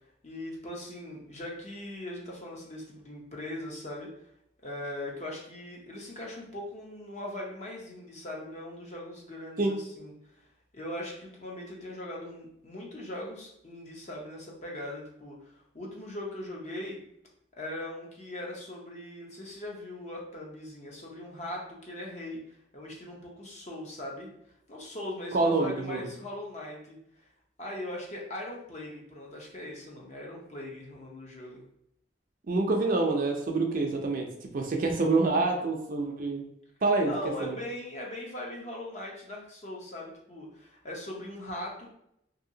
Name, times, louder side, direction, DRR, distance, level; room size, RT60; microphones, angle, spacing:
voice 1, 0.2-4.1 4.6-10.1 10.7-17.0 17.6-24.3 24.7-27.3 27.6-31.6 37.0-42.0, left 1 dB, 35° left, -2 dB, 0.7 m, -40 dB
voice 2, 25.3-26.1 32.5-34.3 34.5-36.4 36.8-37.1 37.4-37.5, right 3 dB, 45° right, 2 dB, 0.4 m, -26 dB
2.7 x 2.7 x 2.7 m, 0.75 s
head